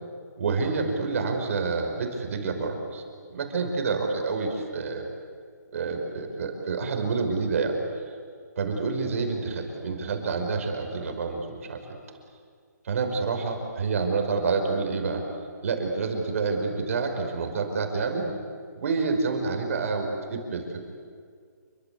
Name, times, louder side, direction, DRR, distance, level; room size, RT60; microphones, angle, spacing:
voice 1, 0.4-5.1 5.7-7.8 8.6-12.0 12.8-15.2 15.6-18.3 18.8-20.8, right 4 dB, 50° right, 4 dB, 5.7 m, -28 dB
29.0 x 24.5 x 8.5 m, 2.1 s
hypercardioid pair, 155°, 10 cm